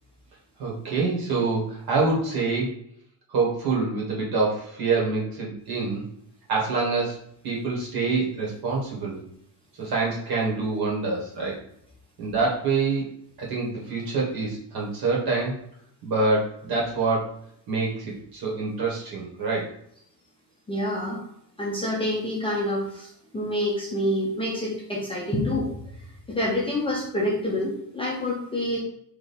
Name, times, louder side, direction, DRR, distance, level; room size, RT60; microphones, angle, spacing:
voice 1, 0.6-2.7 3.3-6.0 6.5-9.2 9.8-11.6 12.2-13.1 13.4-15.6 16.0-17.4 17.7-19.7, right 3 dB, 50° right, -3 dB, 1.7 m, -26 dB
voice 2, 20.7-21.2 21.6-25.7 26.3-28.8, left 1 dB, 10° left, -4 dB, 0.6 m, -27 dB
3.5 x 2.9 x 4.4 m, 0.70 s
cardioid pair, 165°, 47 cm